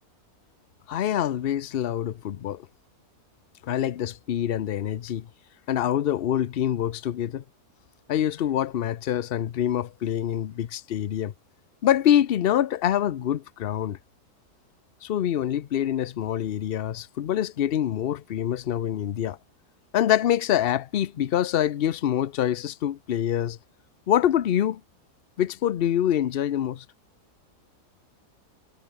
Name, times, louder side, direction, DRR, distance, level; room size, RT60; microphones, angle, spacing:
voice 1, 0.9-2.7 3.6-5.3 5.7-7.4 8.1-11.3 11.8-14.0 15.0-19.4 19.9-23.6 24.1-24.8 25.4-26.8, left 11 dB, 55° left, 0.6 m, -25 dB
omnidirectional pair, 1.7 m